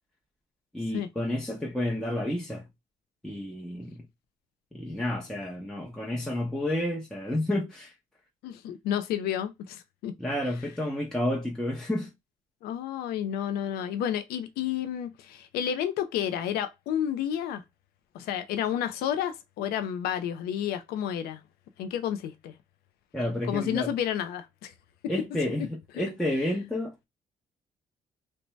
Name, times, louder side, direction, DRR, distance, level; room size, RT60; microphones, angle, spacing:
voice 1, 0.7-2.7 3.2-3.9 4.7-7.9 10.2-12.1 23.1-23.9 25.1-27.1, left 1 dB, 5° left, 0.7 m, -30 dB
voice 2, 8.4-10.1 12.6-17.6 18.1-21.4 21.8-22.5 23.5-24.7, left 10 dB, 85° left, 0.4 m, -31 dB
2.6 x 2.1 x 3.0 m
supercardioid pair, 70°, 16 cm